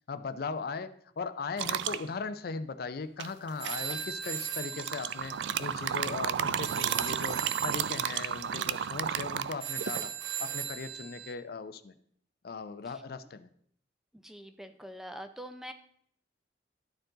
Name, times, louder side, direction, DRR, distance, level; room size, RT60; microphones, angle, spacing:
voice 1, 0.0-10.1 10.4-11.9 12.4-13.5, left 4 dB, 55° left, 12 dB, 0.4 m, -38 dB
sound 1, 1.6-2.0 3.2-4.0 4.7-10.1, right 9 dB, 75° right, 0.3 m, -32 dB
sound 2, 3.6-11.3, right 8 dB, 90° right, 0.8 m, -39 dB
voice 2, 14.2-15.7, equal, ahead, 8 dB, 0.4 m, -44 dB
12.5 x 4.5 x 3.8 m, 0.65 s
head